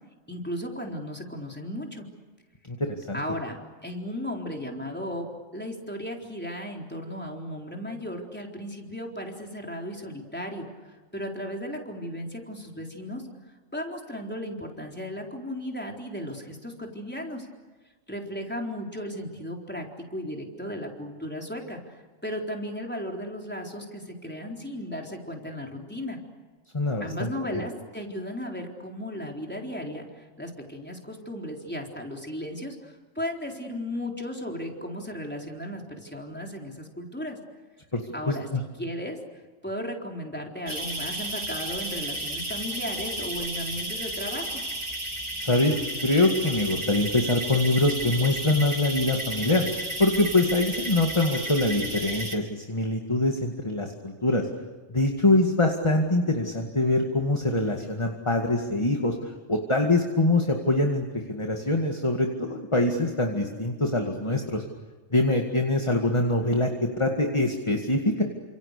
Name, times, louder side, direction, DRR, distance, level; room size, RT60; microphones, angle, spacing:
voice 1, 0.3-2.1 3.1-10.7 11.1-13.3 13.7-17.5 18.1-26.2 27.0-37.4 38.1-38.5 38.8-39.2 39.6-44.6, equal, 10° left, 1 dB, 4.1 m, -35 dB
voice 2, 2.7-3.2 26.7-27.6 37.9-38.6 45.4-45.8 46.0-49.6 50.0-54.5 54.9-64.6 65.1-66.7 67.0-68.2, left 2 dB, 25° left, 3 dB, 2.2 m, -24 dB
sound 1, 40.7-52.3, right 1 dB, 25° right, 2.9 m, -33 dB
30.0 x 27.0 x 6.8 m, 1.3 s
omnidirectional pair, 1.2 m